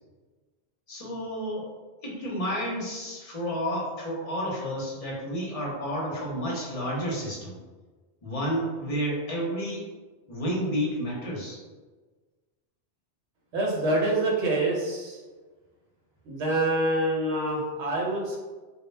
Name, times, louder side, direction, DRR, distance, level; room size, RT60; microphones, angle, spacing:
voice 1, 0.9-1.7 2.0-7.5 8.2-9.9 10.3-11.6, equal, 40° left, -4 dB, 0.6 m, -31 dB
voice 2, 13.5-15.2 16.2-18.4, right 1 dB, 80° right, -3 dB, 1.0 m, -26 dB
2.1 x 2.1 x 3.1 m, 1.3 s
omnidirectional pair, 1.1 m